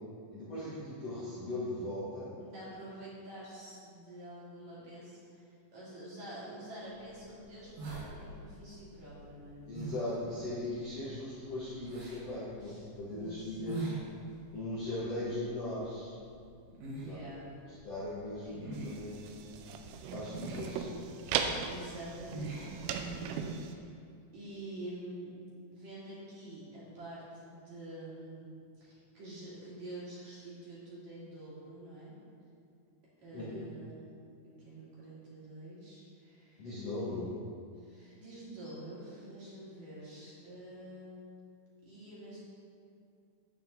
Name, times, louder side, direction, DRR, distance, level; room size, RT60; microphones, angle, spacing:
voice 1, 0.3-2.3 9.7-13.9 14.5-16.1 17.0-17.2 17.8-18.6 18.8-19.5 20.1-20.9 33.3-33.7 36.6-37.3, left 1 dB, 85° left, -10 dB, 1.3 m, -38 dB
voice 2, 2.4-9.7 12.6-13.9 16.9-17.5 18.4-18.6 21.6-23.9 24.3-25.3 25.7-28.5 28.8-32.1 33.2-34.1 34.6-36.7 37.7-41.4 41.8-42.4, right 1 dB, 40° right, -9 dB, 3.3 m, -47 dB
sound 1, 6.9-23.5, right 2 dB, 70° right, 4.3 m, -46 dB
sound 2, 18.7-23.7, right 6 dB, 90° right, 3.4 m, -38 dB
10.0 x 8.9 x 3.8 m, 2.4 s
omnidirectional pair, 5.9 m